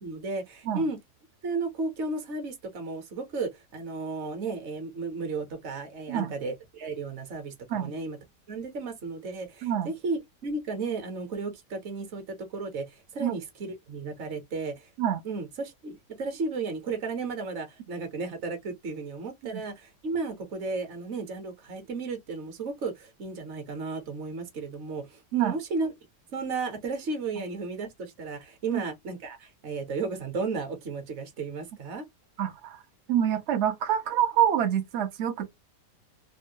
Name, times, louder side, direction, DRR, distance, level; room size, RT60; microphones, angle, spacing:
voice 1, 0.0-1.0 1.4-8.2 8.5-14.9 15.2-25.9 26.3-32.0, right 3 dB, 50° right, 1.0 m, -34 dB
voice 2, 32.4-32.8 33.1-35.5, right 10 dB, 75° right, 0.6 m, -26 dB
3.4 x 2.1 x 2.6 m
omnidirectional pair, 1.8 m